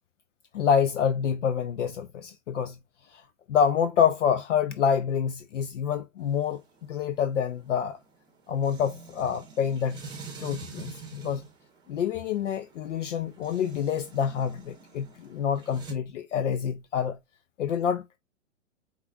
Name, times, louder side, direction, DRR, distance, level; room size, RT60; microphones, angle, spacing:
voice 1, 0.5-2.8 3.1-3.2 3.5-6.6 6.9-8.0 8.5-10.1 10.4-11.4 11.9-17.2 17.6-18.2, left 7 dB, 65° left, 0.6 m, -27 dB
sound 1, 6.2-15.9, right 4 dB, 10° right, 0.8 m, -46 dB
4.8 x 2.4 x 2.4 m
figure-of-eight pair, 115°, 39 cm